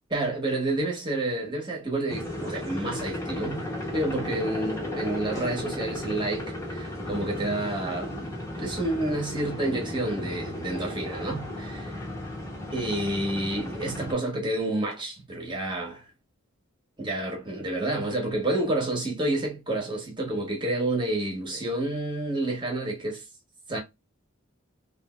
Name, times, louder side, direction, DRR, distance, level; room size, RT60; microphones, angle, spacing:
voice 1, 0.1-3.7 3.9-8.3 8.6-11.9 12.7-16.0 17.0-23.2 23.7-23.8, right 1 dB, 20° right, 1.2 m, -29 dB
sound 1, 2.1-14.1, left 1 dB, 15° left, 1.1 m, -35 dB
3.3 x 2.6 x 2.4 m
head